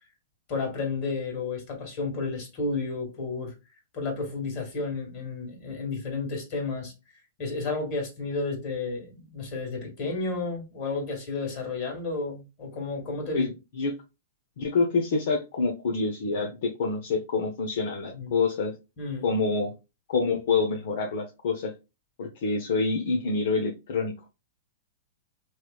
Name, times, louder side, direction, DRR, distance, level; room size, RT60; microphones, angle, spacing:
voice 1, 0.5-3.5 3.9-6.9 7.4-13.5 18.1-18.3 19.0-19.3, left 3 dB, 45° left, 1.9 m, -32 dB
voice 2, 14.6-18.8 19.2-19.7 20.1-21.7 22.2-24.1, left 4 dB, 65° left, 0.7 m, -27 dB
3.1 x 3.0 x 2.3 m
hypercardioid pair, 130°, 0 cm